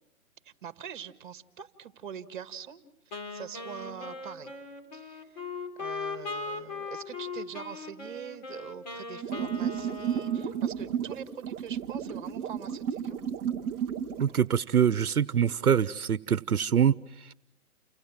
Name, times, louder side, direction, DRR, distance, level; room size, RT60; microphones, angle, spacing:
voice 1, 0.4-4.5 4.9-5.4 5.8-13.2, right 8 dB, 35° right, 11 dB, 1.9 m, -44 dB
Wind instrument woodwind instrument, 3.1-11.0, left 4 dB, 30° left, 3.3 m, -39 dB
sound 1, 9.2-14.4, right 8 dB, 10° right, 1.0 m, -32 dB
voice 2, 14.2-17.3, right 8 dB, 80° right, 16 dB, 1.0 m, -25 dB
29.5 x 26.5 x 7.4 m, 0.82 s
hypercardioid pair, 160°, 44 cm